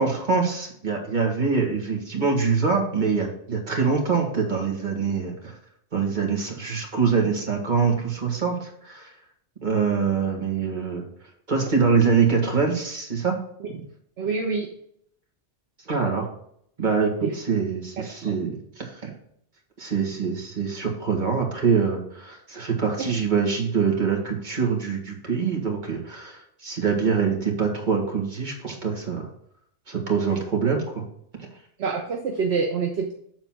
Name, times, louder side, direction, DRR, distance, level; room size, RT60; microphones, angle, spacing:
voice 1, 0.0-5.5 5.9-9.1 9.6-11.1 11.5-13.3 15.9-16.3 16.8-19.1 19.8-29.3 29.9-31.0, right 5 dB, 40° right, 0 dB, 1.9 m, -24 dB
voice 2, 14.2-14.7 17.2-17.4 18.0-18.3 23.0-23.1 31.8-33.1, right 5 dB, 65° right, 3 dB, 1.1 m, -27 dB
7.6 x 4.0 x 5.7 m, 0.70 s
omnidirectional pair, 1.2 m